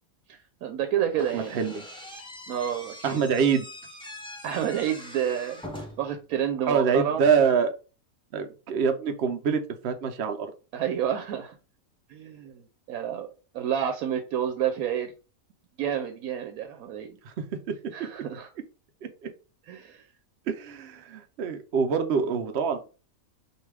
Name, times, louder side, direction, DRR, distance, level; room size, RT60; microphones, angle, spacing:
voice 1, 0.3-1.6 2.5-3.2 4.4-5.6 6.0-7.2 10.7-11.6 12.1-13.3 13.5-15.1 15.8-17.1 17.9-18.5 19.7-20.0, right 9 dB, 85° right, 6 dB, 1.1 m, -29 dB
Slam / Squeak, 1.2-6.2, left 1 dB, 5° left, 0.7 m, -43 dB
voice 2, 1.3-1.8 3.0-3.7 6.7-7.7 8.3-10.5 17.2-17.7 19.0-19.3 20.5-22.9, right 6 dB, 60° right, 6 dB, 0.7 m, -25 dB
4.7 x 2.6 x 3.2 m, 0.34 s
omnidirectional pair, 1.5 m